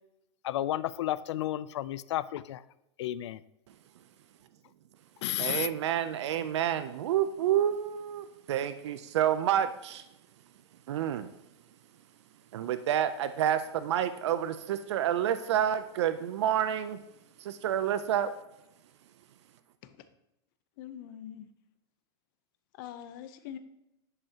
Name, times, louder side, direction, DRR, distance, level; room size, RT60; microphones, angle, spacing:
voice 1, 0.4-2.6 3.0-3.4 5.2-5.7, left 13 dB, 85° left, 17 dB, 0.4 m, -32 dB
voice 2, 5.4-10.0 10.9-11.3 12.5-17.0 17.4-18.3, right 10 dB, 80° right, 12 dB, 0.5 m, -29 dB
voice 3, 20.8-21.5 22.7-23.6, left 10 dB, 50° left, 10 dB, 0.7 m, -44 dB
10.5 x 5.6 x 2.8 m, 0.88 s
supercardioid pair, 160°, 14 cm